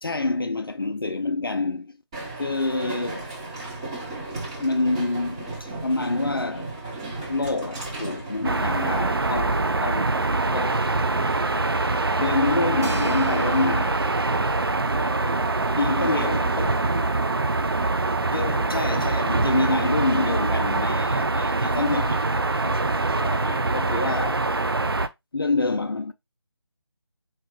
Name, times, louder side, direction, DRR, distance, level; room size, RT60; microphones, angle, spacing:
voice 1, 0.0-2.0 2.4-3.2 4.6-6.7 7.3-10.2 10.5-10.8 12.2-14.0 15.8-16.8 18.1-24.5 25.3-26.1, left 3 dB, 55° left, 0.5 m, -27 dB
Train, 2.1-14.7, right 2 dB, 15° right, 0.9 m, -37 dB
voice 2, 2.9-3.5 15.0-17.6, left 2 dB, 15° left, 0.7 m, -45 dB
sound 1, 8.4-25.1, right 2 dB, 60° right, 0.6 m, -24 dB
sound 2, 12.8-15.3, right 1 dB, 35° right, 1.5 m, -45 dB
4.4 x 2.9 x 3.5 m
figure-of-eight pair, 160°, 14 cm